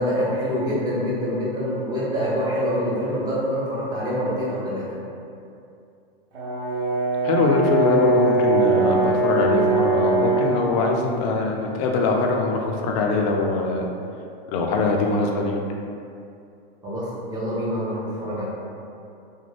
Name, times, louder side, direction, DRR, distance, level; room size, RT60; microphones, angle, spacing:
voice 1, 0.0-5.0 16.8-18.5, equal, 15° right, -8 dB, 0.6 m, -25 dB
Brass instrument, 6.3-10.6, right 2 dB, 85° right, 0.9 m, -21 dB
voice 2, 7.2-13.9 14.5-15.5, left 3 dB, 40° left, 1 dB, 0.4 m, -22 dB
2.5 x 2.1 x 3.2 m, 2.5 s
hypercardioid pair, 130°, 30 cm